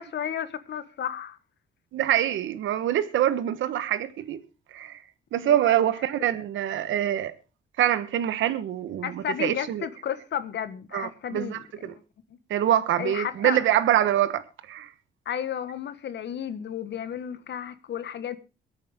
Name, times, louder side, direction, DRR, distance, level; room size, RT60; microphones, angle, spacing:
voice 1, 0.0-1.4 5.4-5.9 9.0-11.9 13.0-13.6 15.2-18.4, left 9 dB, 60° left, 1.6 m, -33 dB
voice 2, 1.9-4.4 4.7-5.0 5.3-7.3 7.8-9.9 10.9-11.9 12.5-14.9, right 11 dB, 75° right, 1.3 m, -25 dB
23.0 x 8.7 x 3.6 m
cardioid pair, 90°, 20 cm